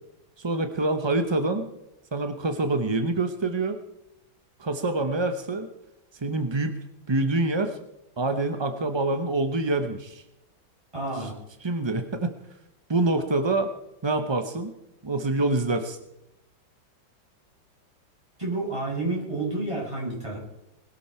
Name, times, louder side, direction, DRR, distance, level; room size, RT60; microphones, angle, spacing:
voice 1, 0.4-1.7 2.1-3.8 4.6-5.7 6.2-6.8 7.1-7.8 8.2-10.2 11.2-11.3 11.6-12.3 12.9-13.7 14.0-14.7 15.0-16.0, right 2 dB, 35° right, 7 dB, 0.4 m, -26 dB
voice 2, 10.9-11.4 18.4-20.4, right 2 dB, 15° right, -5 dB, 6.8 m, -30 dB
21.0 x 13.0 x 4.4 m, 0.89 s
omnidirectional pair, 2.1 m